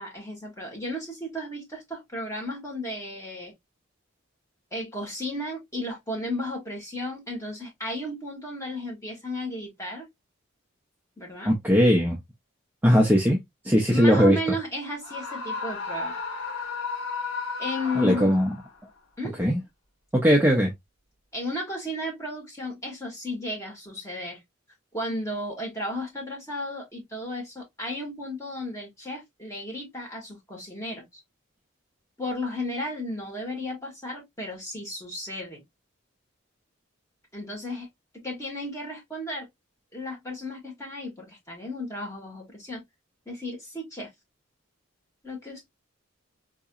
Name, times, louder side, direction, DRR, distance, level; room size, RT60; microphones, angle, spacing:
voice 1, 0.0-3.5 4.7-10.1 11.2-11.5 13.9-16.2 17.6-18.4 19.2-19.4 21.3-24.4 24.9-31.2 32.2-35.6 37.3-37.9 38.1-39.5 39.9-42.8 43.2-44.1 45.2-45.7, left 1 dB, 15° left, 1.6 m, -34 dB
voice 2, 11.5-12.2 12.8-13.4 13.6-14.4 18.0-18.5 19.4-19.6 20.1-20.7, equal, 10° right, 0.5 m, -19 dB
Screaming, 15.0-18.7, left 4 dB, 90° left, 1.0 m, -33 dB
3.9 x 2.8 x 2.3 m
head